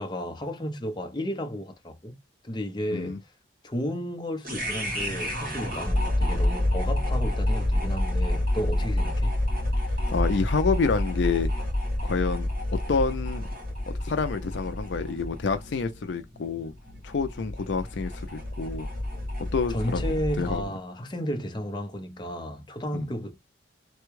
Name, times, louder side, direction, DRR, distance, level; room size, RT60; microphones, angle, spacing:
voice 1, 0.0-3.3 3.6-9.3 19.7-23.4, equal, 25° left, 0.6 m, -33 dB
sound 1, 4.4-20.7, left 1 dB, 45° right, 1.8 m, -28 dB
voice 2, 10.1-11.5 12.0-12.5 12.9-13.4 14.0-16.7 17.0-18.9 19.5-20.1 20.4-20.6 22.9-23.1, left 4 dB, 65° left, 0.4 m, -28 dB
3.4 x 2.2 x 3.1 m
head